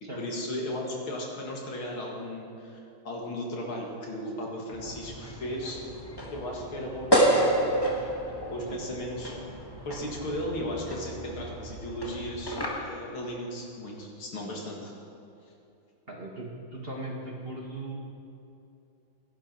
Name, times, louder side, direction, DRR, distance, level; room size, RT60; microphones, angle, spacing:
voice 1, 0.0-5.8 6.3-9.4 9.8-15.0, left 1 dB, 75° left, -1 dB, 2.9 m, -36 dB
sound 1, 4.7-12.7, right 1 dB, 10° left, 1.6 m, -30 dB
voice 2, 16.1-18.0, right 2 dB, 30° right, -2 dB, 1.6 m, -38 dB
17.0 x 10.5 x 4.6 m, 2.7 s
omnidirectional pair, 2.3 m